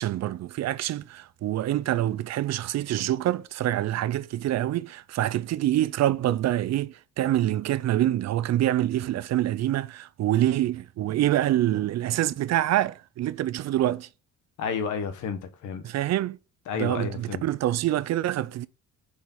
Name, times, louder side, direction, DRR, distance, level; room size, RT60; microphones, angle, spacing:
voice 1, 0.0-14.1 15.8-16.4 16.7-18.7, right 13 dB, 60° right, 0.5 m, -26 dB
voice 2, 14.6-15.8 16.7-17.4, left 6 dB, 80° left, 1.2 m, -31 dB
5.3 x 4.8 x 4.2 m
cardioid pair, 90°, 30 cm